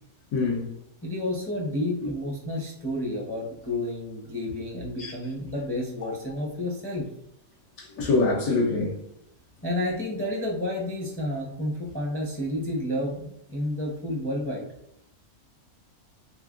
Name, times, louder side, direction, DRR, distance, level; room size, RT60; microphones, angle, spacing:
voice 1, 0.3-0.7 2.0-2.1 5.0-5.1 7.8-9.0, left 3 dB, 90° left, 1.2 m, -25 dB
voice 2, 1.0-7.1 9.6-14.7, left 1 dB, 20° left, 0.3 m, -30 dB
3.6 x 3.2 x 2.4 m
omnidirectional pair, 1.6 m